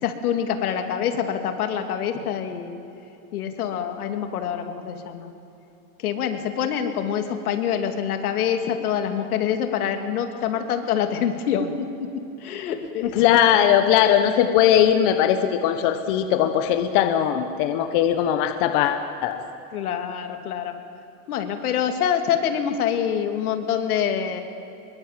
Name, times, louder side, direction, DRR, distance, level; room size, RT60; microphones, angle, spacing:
voice 1, 0.0-2.8 3.3-5.3 6.0-12.1 12.4-13.2 19.7-20.7 21.3-24.4, left 8 dB, 80° left, 6 dB, 2.8 m, -26 dB
voice 2, 13.1-19.4, left 10 dB, 35° left, 7 dB, 1.1 m, -19 dB
24.5 x 22.5 x 7.5 m, 2.9 s
supercardioid pair, 170°, 44 cm